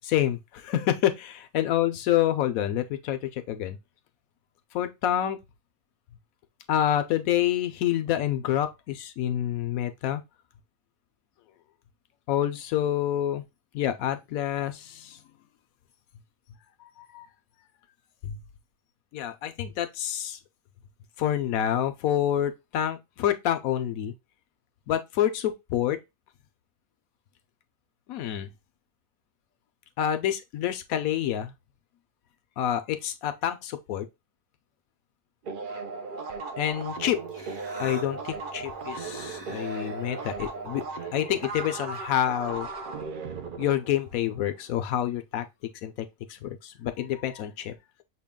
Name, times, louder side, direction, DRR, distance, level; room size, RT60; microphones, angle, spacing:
voice 1, 0.0-3.8 4.7-5.4 6.7-10.2 12.3-13.4 13.7-15.2 17.0-17.3 18.2-18.4 19.1-20.4 21.2-24.1 24.9-26.0 28.1-28.5 30.0-31.5 32.6-34.1 36.6-37.2 37.8-40.8 41.1-42.7 43.6-45.4 45.8-46.1 46.4-47.7, left 11 dB, 85° left, 1.1 m, -27 dB
sound 1, 35.4-44.6, right 4 dB, 55° right, 0.6 m, -37 dB
Human voice, 36.9-42.1, right 1 dB, 25° right, 0.8 m, -45 dB
6.3 x 2.3 x 3.5 m
omnidirectional pair, 1.4 m